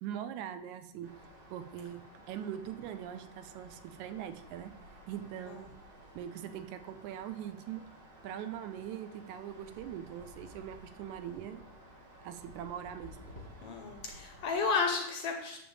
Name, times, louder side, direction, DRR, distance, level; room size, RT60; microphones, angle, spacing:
voice 1, 0.0-1.1 1.5-2.0 2.3-4.7 5.1-5.7 6.1-7.8 8.2-11.6 12.2-13.2, right 10 dB, 80° right, 9 dB, 2.0 m, -41 dB
sound 1, 1.0-14.7, equal, 55° right, 3.1 m, -54 dB
voice 2, 13.6-15.6, left 4 dB, 75° left, 4 dB, 1.4 m, -32 dB
10.0 x 3.5 x 7.0 m, 0.88 s
omnidirectional pair, 3.5 m